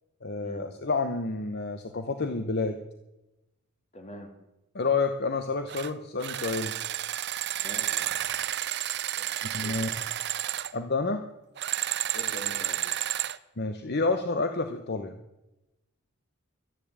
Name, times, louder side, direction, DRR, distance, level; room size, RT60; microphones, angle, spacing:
voice 1, 0.2-2.8 4.7-6.7 9.5-9.9 10.7-11.2 13.6-15.1, left 3 dB, 45° left, 7 dB, 0.9 m, -29 dB
voice 2, 3.9-4.3 7.6-8.3 9.2-9.3 9.6-9.8 12.1-12.8, left 1 dB, 30° left, 5 dB, 2.4 m, -44 dB
sound 1, 5.7-5.9 6.2-10.7 11.6-13.4, right 12 dB, 50° right, 0.5 m, -31 dB
12.5 x 10.5 x 8.7 m, 0.96 s
head